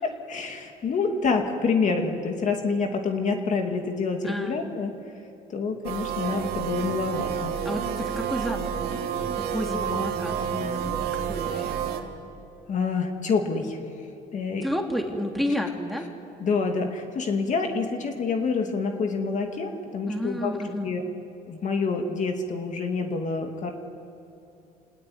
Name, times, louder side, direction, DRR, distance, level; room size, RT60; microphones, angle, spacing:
voice 1, 0.0-4.9 5.5-7.5 12.7-13.8 14.3-14.7 16.4-21.0 21.5-23.7, left 4 dB, 45° left, 4 dB, 2.5 m, -27 dB
voice 2, 4.2-4.6 7.6-10.8 11.3-11.8 14.6-16.0 20.1-20.9, equal, ahead, 2 dB, 2.7 m, -31 dB
sound 1, 5.8-12.0, right 8 dB, 75° right, 2.3 m, -29 dB
27.0 x 19.5 x 9.4 m, 2.8 s
cardioid pair, 110°, 17 cm